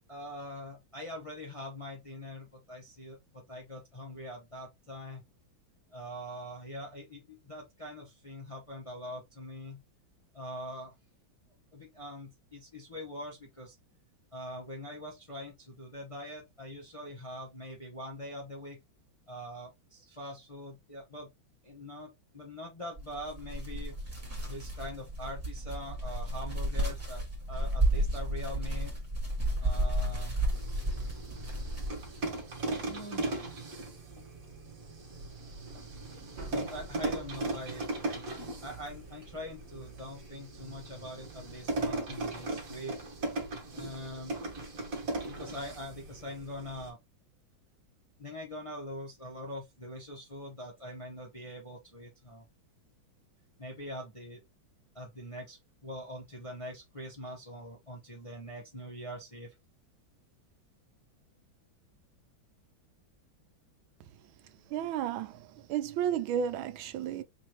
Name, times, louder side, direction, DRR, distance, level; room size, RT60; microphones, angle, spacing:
voice 1, 0.1-5.2 5.9-9.8 10.3-10.9 11.7-13.7 14.3-18.8 19.3-21.3 21.6-24.0 24.5-28.9 29.6-30.4 32.9-34.2 35.7-35.8 36.5-37.9 38.6-43.0 43.7-44.3 45.3-47.0 48.2-52.4 53.6-54.4 54.9-59.5, left 1 dB, 30° left, 0.6 m, -43 dB
sound 1, 23.0-32.2, right 1 dB, 10° right, 1.7 m, -32 dB
sound 2, 30.5-46.9, right 2 dB, 50° right, 1.6 m, -38 dB
sound 3, 35.1-40.1, right 2 dB, 30° right, 1.6 m, -50 dB
voice 2, 64.7-65.4 65.7-67.2, right 9 dB, 90° right, 1.4 m, -32 dB
4.4 x 3.1 x 2.9 m
omnidirectional pair, 2.1 m